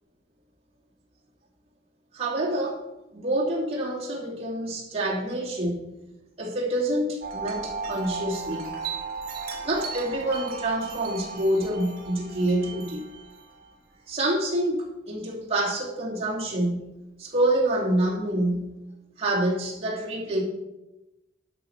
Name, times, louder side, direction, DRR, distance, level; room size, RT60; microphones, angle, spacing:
voice 1, 2.1-2.8 3.1-5.9 6.4-8.7 9.6-13.0 14.1-16.8 17.2-18.7 19.2-20.4, right 1 dB, 35° right, -4 dB, 2.9 m, -27 dB
Wind chime, 7.2-13.7, right 4 dB, 55° right, 2.3 m, -36 dB
11.5 x 6.4 x 5.8 m, 0.96 s
head